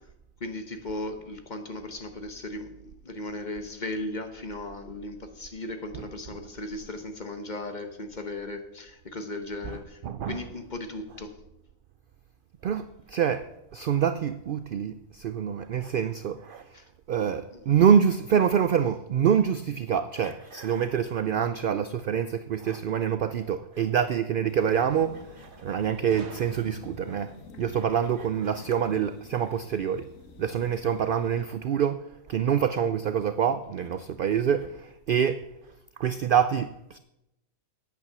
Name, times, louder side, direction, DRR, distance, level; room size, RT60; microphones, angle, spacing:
voice 1, 0.4-2.7 3.0-10.0 10.3-11.4 16.7-16.8 17.5-17.6, left 2 dB, 35° left, 1.0 m, -36 dB
voice 2, 9.6-10.6 11.1-11.2 12.6-16.7 17.1-30.1 30.4-35.5 36.0-37.0, right 8 dB, 85° right, 0.4 m, -26 dB
sound 1, 24.4-31.4, left 4 dB, 75° left, 1.4 m, -49 dB
Gunshot gunfire, 26.1-27.3, right 5 dB, 55° right, 1.2 m, -48 dB
8.7 x 8.6 x 6.7 m
omnidirectional pair, 1.4 m